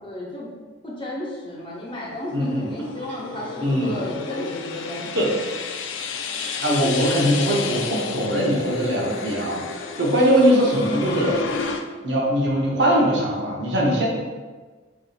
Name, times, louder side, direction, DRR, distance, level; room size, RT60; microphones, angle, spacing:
voice 1, 0.0-0.5 0.8-5.4, equal, 30° left, -5 dB, 0.8 m, -33 dB
sound 1, 1.7-11.8, left 5 dB, 85° left, 0.3 m, -31 dB
voice 2, 2.3-2.7 3.6-3.9 5.1-5.3 6.6-11.4 12.0-14.1, equal, 70° right, -3 dB, 0.8 m, -21 dB
4.7 x 2.7 x 2.4 m, 1.4 s
head